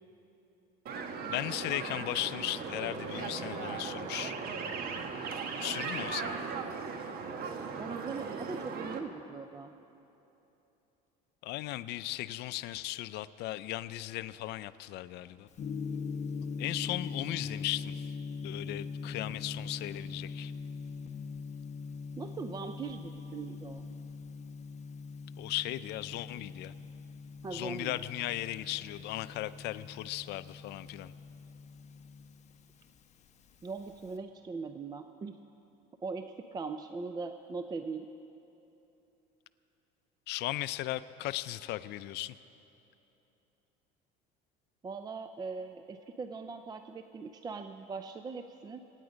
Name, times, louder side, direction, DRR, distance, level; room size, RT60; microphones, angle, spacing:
sound 1, 0.9-9.0, right 5 dB, 50° right, 1.2 m, -38 dB
voice 1, 1.3-4.3 5.6-6.5 11.4-15.5 16.6-18.1 18.4-20.5 25.4-26.7 27.5-31.1 40.3-42.4, left 16 dB, 60° left, 14 dB, 0.5 m, -37 dB
voice 2, 7.8-9.7 22.2-23.9 27.4-28.0 33.6-35.4 36.0-38.1 44.8-48.8, right 4 dB, 20° right, 8 dB, 0.4 m, -40 dB
Gong, 15.5-34.1, left 5 dB, 35° left, 1.0 m, -42 dB
24.0 x 9.8 x 5.2 m, 3.0 s
cardioid pair, 125°, 20 cm